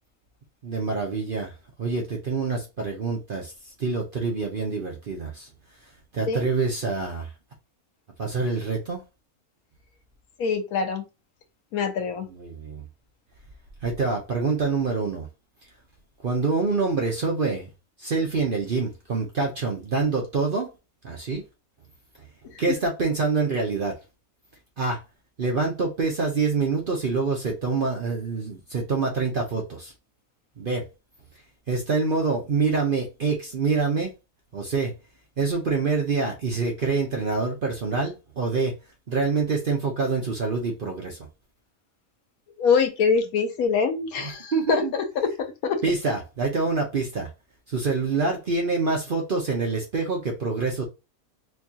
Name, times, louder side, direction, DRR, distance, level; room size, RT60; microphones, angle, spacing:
voice 1, 0.6-1.5 1.8-3.5 3.8-5.5 6.1-7.3 8.2-9.0 12.3-12.8 13.8-15.3 16.2-17.7 18.0-20.7 21.0-21.4 22.6-23.9 24.8-25.0 25.4-29.9 30.6-30.8 31.7-34.1 34.5-34.9 35.4-38.7 39.1-41.2 44.2-44.9 45.8-47.3 47.7-50.8, right 4 dB, 50° right, 0.7 m, -26 dB
voice 2, 10.4-11.1 11.7-12.3 22.4-22.6 42.6-45.8, left 5 dB, 75° left, 1.2 m, -24 dB
4.4 x 2.3 x 2.7 m
omnidirectional pair, 1.6 m